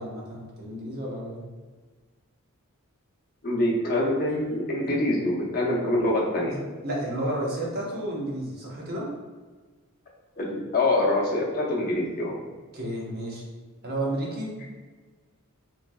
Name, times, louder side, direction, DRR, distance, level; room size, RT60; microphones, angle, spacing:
voice 1, 0.0-1.4 4.3-4.4 4.9-5.0 6.5-6.6 6.8-9.1 12.7-13.4 13.8-14.5, right 1 dB, 45° right, -3 dB, 0.9 m, -31 dB
voice 2, 3.4-6.5 10.4-12.3, left 1 dB, 40° left, -3 dB, 0.8 m, -25 dB
3.7 x 3.2 x 2.2 m, 1.4 s
head